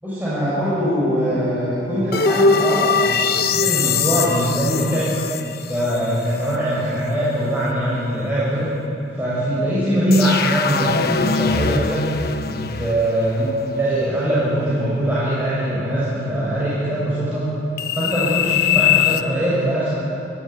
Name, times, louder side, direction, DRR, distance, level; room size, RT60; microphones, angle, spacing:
voice 1, 0.0-5.2 5.7-8.7 9.1-12.1 12.5-17.5 17.9-19.9, equal, 10° right, -10 dB, 7.3 m, -22 dB
sound 1, 2.1-6.0 6.4-6.5 10.1-13.8 17.8-19.2, left 6 dB, 55° left, 1.0 m, -21 dB
25.0 x 18.0 x 9.8 m, 2.7 s
head